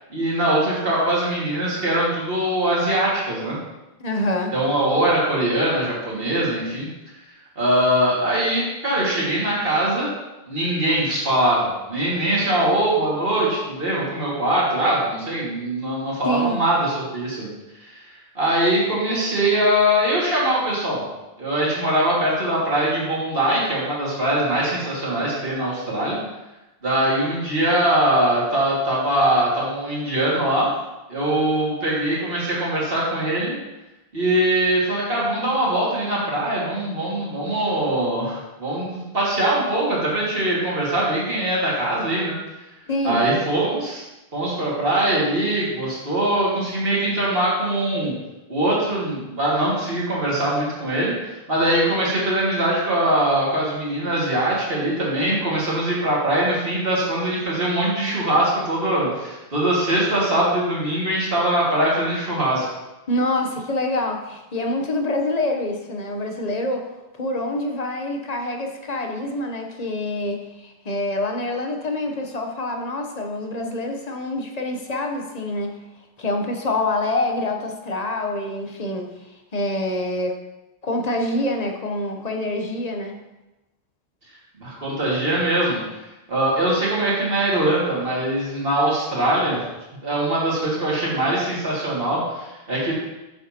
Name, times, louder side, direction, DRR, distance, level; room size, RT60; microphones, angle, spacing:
voice 1, 0.1-3.6 4.5-6.9 7.6-10.1 10.5-17.5 17.8-21.0 21.4-26.2 26.8-30.7 31.1-33.6 34.1-42.3 43.0-44.0 44.3-48.1 48.5-62.7 84.6-85.8 86.3-89.6 90.0-92.9, right 1 dB, 60° right, -6 dB, 2.4 m, -22 dB
voice 2, 4.0-4.5 16.2-16.6 42.9-43.2 63.1-66.9 67.2-75.8 76.2-79.1 79.5-80.4 80.8-83.2, left 1 dB, 40° left, 3 dB, 0.9 m, -26 dB
9.1 x 6.9 x 2.9 m, 1.0 s
omnidirectional pair, 1.1 m